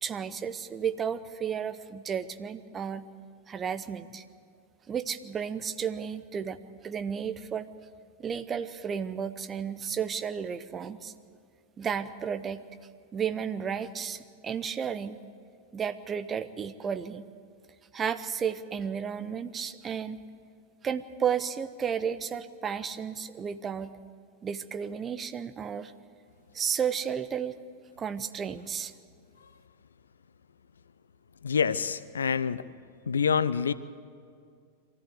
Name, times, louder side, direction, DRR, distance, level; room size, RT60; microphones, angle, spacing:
voice 1, 0.0-3.0 3.5-4.2 4.9-6.6 6.8-7.7 8.2-11.1 11.8-12.6 13.1-15.2 15.7-17.3 17.9-20.2 20.8-23.9 24.4-25.9 26.5-27.5 28.0-28.9, right 7 dB, 20° right, 11 dB, 0.8 m, -33 dB
voice 2, 31.4-32.7 33.1-33.7, left 6 dB, 70° left, 16 dB, 0.6 m, -27 dB
23.5 x 14.5 x 8.1 m, 2.2 s
figure-of-eight pair, 90°, 0 cm